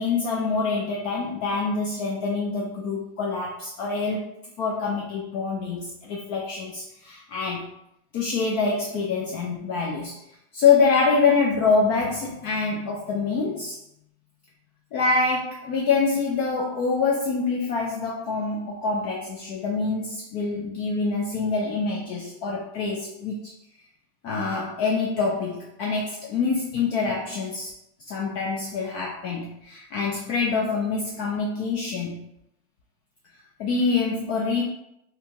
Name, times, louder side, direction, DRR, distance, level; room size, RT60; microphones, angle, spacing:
voice 1, 0.0-4.3 4.6-7.7 8.1-10.2 10.5-13.8 14.9-23.5 24.2-27.7 28.1-32.3 33.6-34.6, left 4 dB, 45° left, -2 dB, 0.4 m, -25 dB
2.8 x 2.2 x 2.8 m, 0.79 s
supercardioid pair, 155°, 38 cm